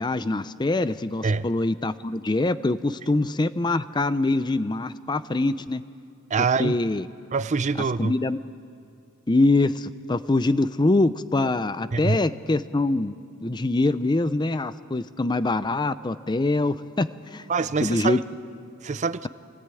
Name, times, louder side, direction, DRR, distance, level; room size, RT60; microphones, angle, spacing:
voice 1, 0.0-5.8 6.6-7.1 8.0-8.4 9.3-13.1 13.4-17.4 17.8-18.2, left 2 dB, 20° left, 14 dB, 0.5 m, -24 dB
voice 2, 6.3-6.8 7.3-8.1 11.9-12.2 17.5-18.2 18.8-19.3, right 4 dB, 35° right, 15 dB, 0.5 m, -24 dB
24.5 x 17.5 x 9.1 m, 2.5 s
head